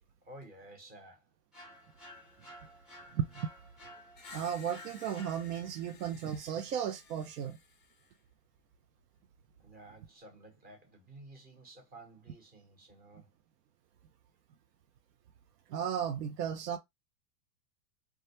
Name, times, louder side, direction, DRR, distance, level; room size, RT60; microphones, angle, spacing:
voice 1, 0.2-1.3 9.6-13.3, right 1 dB, 20° right, 0.8 m, -53 dB
sound 1, 1.5-5.9, equal, ahead, 0.5 m, -53 dB
voice 2, 3.1-3.5 4.3-7.6 15.7-16.8, right 8 dB, 80° right, 0.6 m, -35 dB
Screech, 4.1-8.2, left 5 dB, 20° left, 0.8 m, -55 dB
2.3 x 2.1 x 2.7 m
hypercardioid pair, 115°, 47 cm